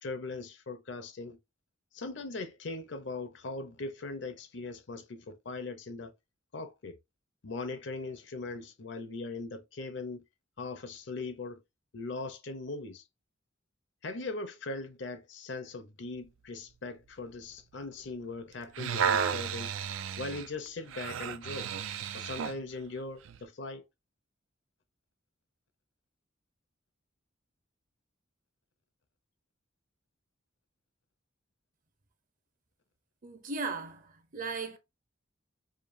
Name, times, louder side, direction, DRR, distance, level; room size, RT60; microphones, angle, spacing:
voice 1, 0.0-1.4 1.9-6.1 6.5-7.0 7.4-10.2 10.6-11.6 11.9-13.0 14.0-19.7 20.2-21.7 22.1-23.8, left 3 dB, 65° left, 0.6 m, -40 dB
sound 1, 18.5-22.6 23.2-23.4, right 7 dB, 80° right, 0.4 m, -33 dB
voice 2, 33.2-34.8, right 4 dB, 40° right, 0.7 m, -37 dB
5.0 x 2.3 x 2.5 m
head